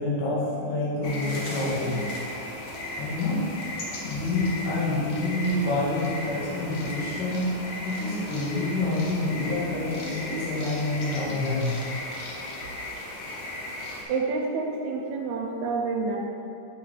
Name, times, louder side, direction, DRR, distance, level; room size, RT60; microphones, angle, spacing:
voice 1, 0.0-2.0 3.0-3.4 4.0-7.5 7.8-11.7, left 2 dB, 85° left, -7 dB, 3.3 m, -27 dB
sound 1, 1.0-14.0, left 1 dB, 65° left, 1.6 m, -36 dB
sound 2, 2.3-3.1 3.5-4.6 4.9-7.2, right 2 dB, 60° right, 1.0 m, -51 dB
voice 2, 14.1-16.2, right 4 dB, 80° right, 0 dB, 1.9 m, -28 dB
8.0 x 4.8 x 4.9 m, 2.7 s
omnidirectional pair, 3.7 m